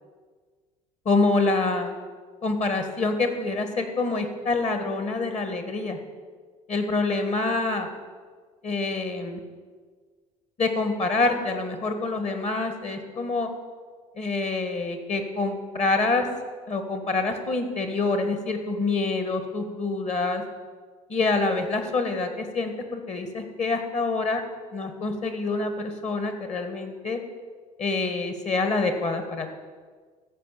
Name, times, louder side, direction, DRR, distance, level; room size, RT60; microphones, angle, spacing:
voice 1, 1.0-1.9 2.4-6.0 6.7-7.9 8.6-9.4 10.6-13.5 14.1-16.2 16.7-20.4 21.1-24.4 24.7-27.2 27.8-29.5, left 3 dB, 40° left, 7 dB, 1.8 m, -26 dB
14.0 x 5.1 x 7.1 m, 1.5 s
hypercardioid pair, 60°, 18 cm